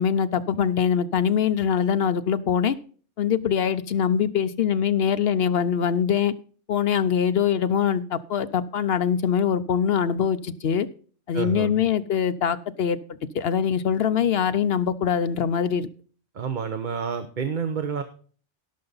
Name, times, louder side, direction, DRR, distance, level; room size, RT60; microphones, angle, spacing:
voice 1, 0.0-2.7 3.2-6.3 6.7-10.9 11.3-13.0 13.3-15.9, left 8 dB, 60° left, 13 dB, 0.8 m, -23 dB
voice 2, 11.3-11.7 16.3-18.0, right 6 dB, 45° right, 8 dB, 0.9 m, -29 dB
17.0 x 6.7 x 3.9 m, 0.42 s
omnidirectional pair, 1.3 m